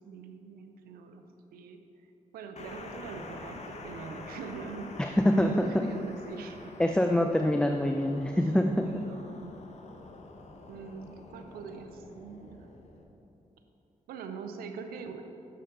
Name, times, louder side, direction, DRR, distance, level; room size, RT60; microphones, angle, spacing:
voice 1, 0.0-1.8 2.3-6.7 8.4-8.5 8.8-9.6 10.7-12.7 14.1-15.3, right 5 dB, 90° right, 7 dB, 0.5 m, -43 dB
sound 1, 2.6-13.0, left 3 dB, 50° left, 0.8 m, -47 dB
voice 2, 5.0-5.9 6.8-9.1, left 1 dB, 5° left, 4 dB, 0.4 m, -25 dB
6.7 x 6.5 x 3.7 m, 2.8 s
supercardioid pair, 50°, 15 cm